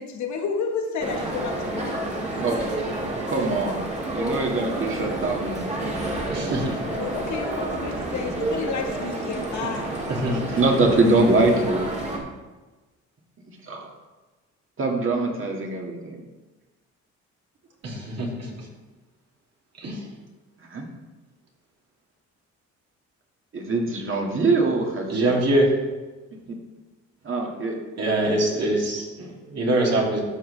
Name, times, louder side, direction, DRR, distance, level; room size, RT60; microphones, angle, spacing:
voice 1, 0.0-2.3 6.9-10.0, left 5 dB, 70° left, 3 dB, 1.4 m, -31 dB
sound 1, 1.0-12.2, right 1 dB, 20° right, 1.8 m, -30 dB
voice 2, 2.4-2.7 3.3-3.8 4.1-6.6 10.3-11.9 13.6-13.9 14.8-16.2 20.7-20.9 23.5-25.3 27.2-27.8, right 2 dB, 45° right, 0 dB, 1.9 m, -23 dB
voice 3, 6.3-6.8 10.1-10.4 17.8-18.5 19.8-20.0 25.1-25.7 28.0-30.2, right 1 dB, 60° right, -2 dB, 2.5 m, -24 dB
12.5 x 6.1 x 3.2 m, 1.2 s
cardioid pair, 90°, 30 cm